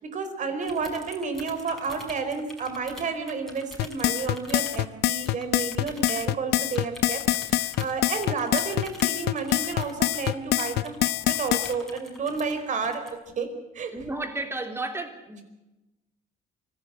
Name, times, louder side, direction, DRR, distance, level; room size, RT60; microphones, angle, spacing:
voice 1, 0.0-13.9, right 4 dB, 45° right, 8 dB, 4.6 m, -31 dB
sound 1, 0.6-4.9 5.2-6.3 6.7-11.0 11.3-12.6 12.8-13.1, left 1 dB, ahead, 6.0 m, -45 dB
sound 2, 3.8-11.7, left 15 dB, 75° left, 0.7 m, -25 dB
voice 2, 13.9-15.4, right 2 dB, 15° right, 5 dB, 3.5 m, -33 dB
25.0 x 17.0 x 8.0 m, 1.0 s
cardioid pair, 110°, 17 cm